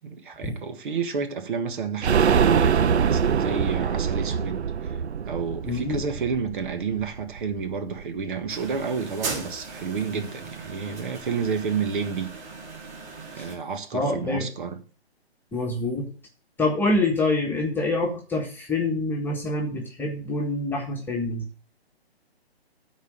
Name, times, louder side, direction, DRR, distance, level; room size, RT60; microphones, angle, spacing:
voice 1, 0.0-5.0 5.3-12.3 13.3-14.8, right 5 dB, 50° right, 1.5 m, -30 dB
sound 1, 2.0-7.6 8.0-8.1 8.4-8.5, right 7 dB, 90° right, 0.5 m, -24 dB
voice 2, 5.6-6.0 10.1-10.2 13.4-13.5 13.9-14.5 15.5-16.1 16.6-21.5, left 2 dB, 5° left, 1.5 m, -26 dB
sound 2, 8.5-13.5, right 4 dB, 20° right, 3.7 m, -38 dB
13.0 x 4.5 x 6.3 m
figure-of-eight pair, 140°, 32 cm